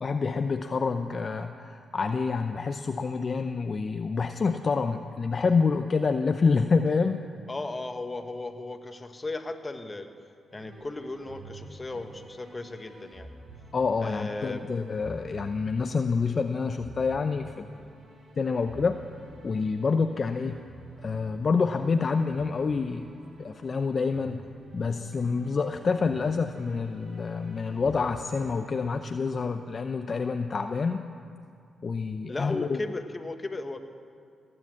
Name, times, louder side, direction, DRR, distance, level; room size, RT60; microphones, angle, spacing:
voice 1, 0.0-7.2 13.7-17.7 18.4-19.0 19.4-20.6 21.0-23.1 23.4-24.4 24.7-31.0 31.8-32.8, left 4 dB, 50° left, 7 dB, 0.6 m, -27 dB
voice 2, 7.5-10.1 10.5-13.3 14.0-14.6 32.3-33.8, left 2 dB, 30° left, 7 dB, 1.4 m, -36 dB
sound 1, 10.5-29.0, right 2 dB, 70° right, 4.4 m, -49 dB
17.0 x 10.0 x 7.8 m, 2.3 s
supercardioid pair, 55°, 0 cm